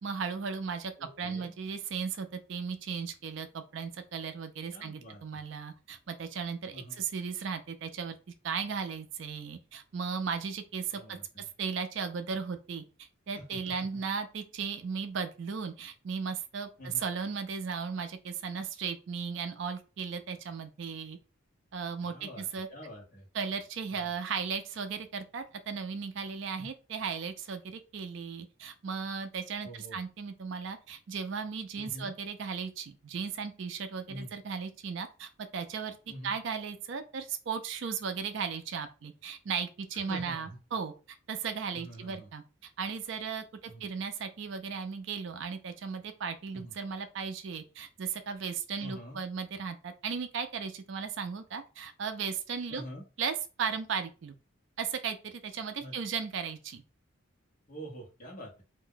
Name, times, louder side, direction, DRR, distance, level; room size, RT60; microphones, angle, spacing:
voice 1, 0.0-0.9 1.2-8.2 8.4-21.2 21.7-22.7 23.3-36.0 36.2-52.8 53.2-54.3 54.8-56.8, right 6 dB, 60° right, 9 dB, 0.4 m, -36 dB
voice 2, 1.0-1.5 4.7-5.4 6.7-7.0 10.9-11.5 13.3-14.0 16.8-17.1 22.0-23.3 23.9-24.1 26.6-26.7 29.6-30.0 31.8-32.1 34.1-34.3 36.1-36.3 39.9-40.6 41.7-42.3 43.7-43.9 46.5-46.7 48.8-49.2 52.7-53.0 55.8-55.9 57.7-58.6, equal, 40° left, -1 dB, 1.1 m, -46 dB
2.5 x 2.1 x 3.7 m, 0.33 s
head